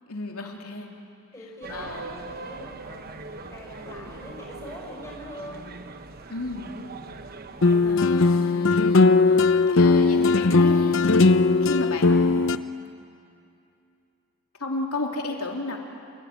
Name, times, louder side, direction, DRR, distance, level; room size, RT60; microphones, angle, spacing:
voice 1, 0.1-0.9 1.7-2.4 6.3-6.7 7.8-9.4 9.7-11.3 11.6-12.4 14.6-15.8, left 2 dB, 85° left, 1 dB, 3.2 m, -33 dB
voice 2, 1.3-5.7, left 1 dB, 15° left, -3 dB, 5.2 m, -43 dB
sound 1, 1.6-7.9, right 3 dB, 45° right, 1.0 m, -41 dB
sound 2, 7.6-12.6, left 3 dB, 60° left, 0.6 m, -18 dB
29.0 x 16.5 x 9.5 m, 2.6 s
head